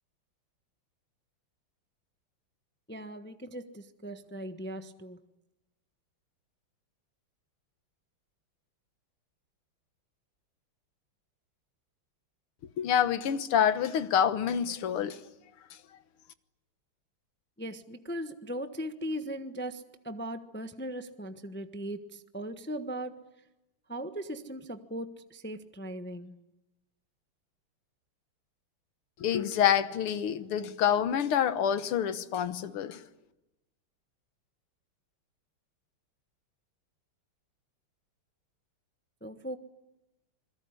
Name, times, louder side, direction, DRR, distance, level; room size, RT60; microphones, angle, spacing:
voice 1, 2.9-5.2 17.6-23.2 23.9-26.4 39.2-39.6, right 1 dB, 10° left, 0.8 m, -39 dB
voice 2, 12.8-15.2 29.2-33.0, left 9 dB, 85° left, 2.1 m, -27 dB
27.0 x 21.5 x 9.8 m
omnidirectional pair, 2.3 m